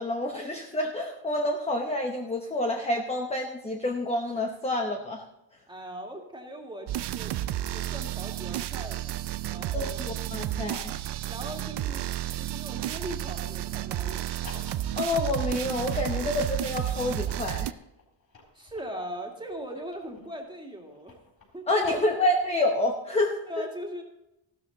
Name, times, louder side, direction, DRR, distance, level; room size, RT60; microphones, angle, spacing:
voice 1, 0.0-5.2 9.7-11.0 14.9-17.7 21.7-23.4, left 1 dB, 15° left, 2 dB, 0.9 m, -28 dB
voice 2, 5.7-7.3 7.7-10.0 11.2-14.5 18.5-21.2 21.5-22.1 23.5-24.0, equal, 10° right, 1 dB, 2.2 m, -40 dB
sound 1, 6.9-17.7, right 13 dB, 55° right, 0.6 m, -32 dB
sound 2, 14.2-16.1 16.7-20.4 20.7-22.7, left 3 dB, 45° left, 4.6 m, -50 dB
15.0 x 12.5 x 4.0 m, 0.90 s
cardioid pair, 160°, 49 cm